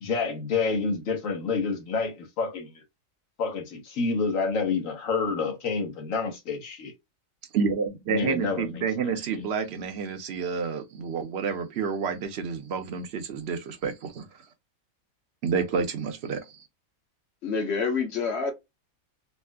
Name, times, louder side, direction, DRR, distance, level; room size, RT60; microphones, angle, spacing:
voice 1, 0.0-2.8 3.4-6.9 8.1-8.7 9.0-9.1, left 4 dB, 70° left, 1.4 m, -28 dB
voice 2, 7.5-14.3 15.4-16.4, right 6 dB, 60° right, 0.9 m, -29 dB
voice 3, 17.4-18.5, left 5 dB, 55° left, 1.1 m, -27 dB
4.2 x 2.1 x 2.2 m
omnidirectional pair, 1.4 m